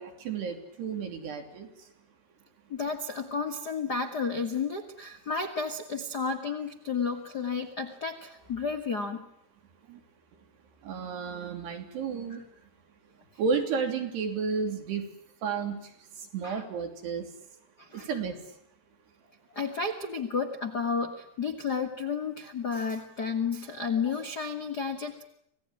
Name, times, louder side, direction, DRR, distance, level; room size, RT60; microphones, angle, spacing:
voice 1, 0.0-1.7 9.9-10.0 10.8-12.4 13.4-15.0 15.4-15.8 16.3-17.3 17.9-18.4, right 5 dB, 70° right, 5 dB, 5.1 m, -32 dB
voice 2, 2.7-9.3 16.4-16.6 17.8-18.1 19.5-25.2, left 5 dB, 55° left, 5 dB, 1.0 m, -32 dB
27.0 x 18.0 x 10.0 m, 0.74 s
omnidirectional pair, 4.9 m